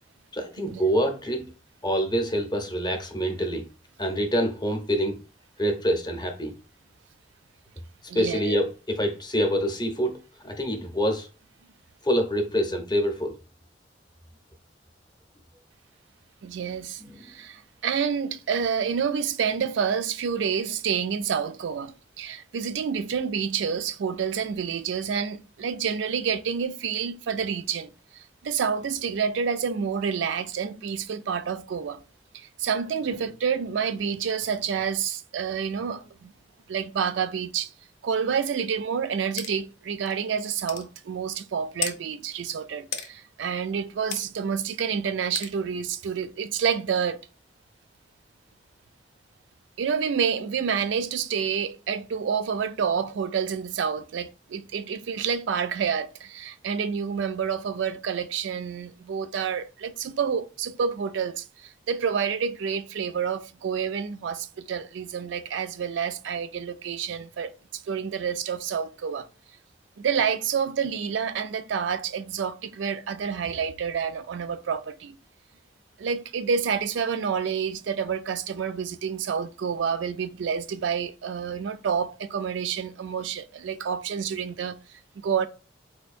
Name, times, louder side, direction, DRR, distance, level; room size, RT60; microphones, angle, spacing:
voice 1, 0.3-1.5 1.8-3.6 4.0-5.2 5.6-6.5 8.1-11.3 12.0-13.3 17.0-17.2, equal, 20° left, 0.6 m, -26 dB
voice 2, 8.1-8.6 16.4-27.9 28.4-32.0 32.3-36.3 36.7-37.7 38.0-47.2 49.8-69.3 70.0-75.1 76.0-84.8 85.2-85.5, right 7 dB, 80° right, 0.3 m, -28 dB
sound 1, 39.4-39.5 40.1-40.2 40.7-40.9 41.8-42.0 42.9-43.1 44.1-44.2 45.3-45.5, left 8 dB, 75° left, 0.6 m, -31 dB
4.4 x 2.6 x 2.4 m
head